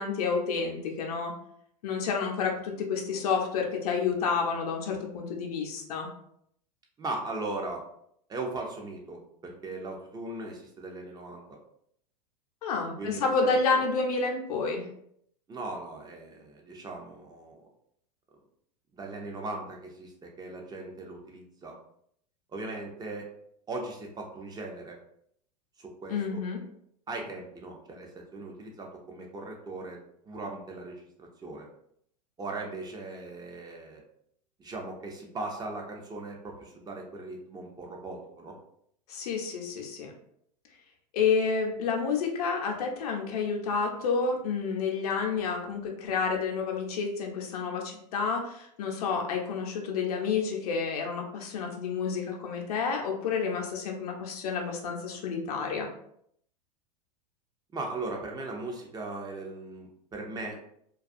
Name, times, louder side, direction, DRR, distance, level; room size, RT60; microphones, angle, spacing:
voice 1, 0.0-1.3 1.8-6.1 12.6-14.8 26.1-26.6 39.1-40.1 41.1-55.9, left 5 dB, 65° left, 1 dB, 0.6 m, -29 dB
voice 2, 7.0-7.8 8.3-11.4 13.0-13.8 15.5-17.7 18.9-21.8 22.5-23.3 23.7-25.0 25.8-26.4 27.1-31.7 32.4-34.0 34.6-38.5 57.7-60.6, right 2 dB, 20° right, 1 dB, 0.5 m, -38 dB
2.3 x 2.3 x 2.5 m, 0.69 s
hypercardioid pair, 90°, 21 cm